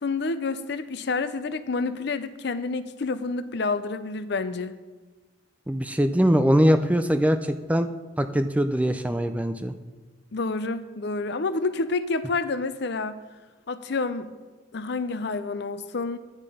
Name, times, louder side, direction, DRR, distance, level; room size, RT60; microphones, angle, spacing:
voice 1, 0.0-4.7 10.3-13.2 13.7-14.3 14.7-16.2, left 3 dB, 60° left, 12 dB, 0.5 m, -28 dB
voice 2, 5.7-7.9 8.2-9.7, equal, 5° right, 9 dB, 0.4 m, -22 dB
9.7 x 8.7 x 5.0 m, 1.3 s
head